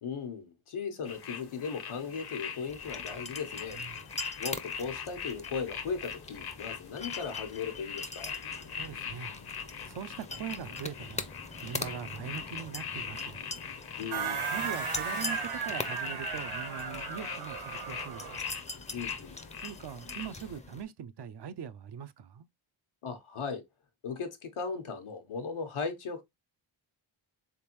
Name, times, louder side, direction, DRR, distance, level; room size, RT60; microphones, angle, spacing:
voice 1, 0.0-3.8 4.4-8.3 14.0-14.4 18.9-19.4 23.0-23.6 24.0-26.2, left 5 dB, 85° left, 1.1 m, -37 dB
sound 1, 1.1-20.6, left 6 dB, 50° left, 0.7 m, -42 dB
sound 2, 2.7-20.8, left 3 dB, 15° left, 0.5 m, -43 dB
voice 2, 8.7-9.3 9.8-11.3 11.6-13.4 14.5-18.3 19.6-22.5, right 8 dB, 55° right, 0.5 m, -41 dB
sound 3, 14.1-18.5, right 6 dB, 85° right, 1.6 m, -36 dB
3.6 x 3.4 x 2.9 m
cardioid pair, 65°, 48 cm